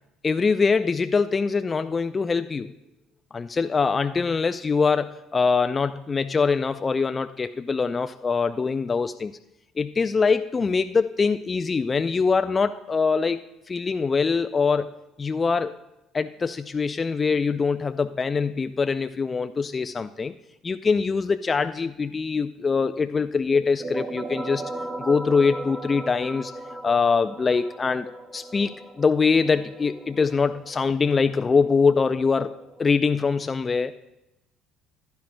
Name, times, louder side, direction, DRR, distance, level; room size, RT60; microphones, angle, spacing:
voice 1, 0.2-2.7 3.3-9.3 9.8-13.4 13.7-14.9 15.2-15.8 16.1-20.3 20.6-24.6 25.0-26.5 26.8-33.9, left 5 dB, 30° left, 10 dB, 0.3 m, -23 dB
sound 1, 23.5-32.9, right 2 dB, 20° right, 0.9 m, -38 dB
15.0 x 10.5 x 2.2 m, 0.90 s
hypercardioid pair, 60°, 0 cm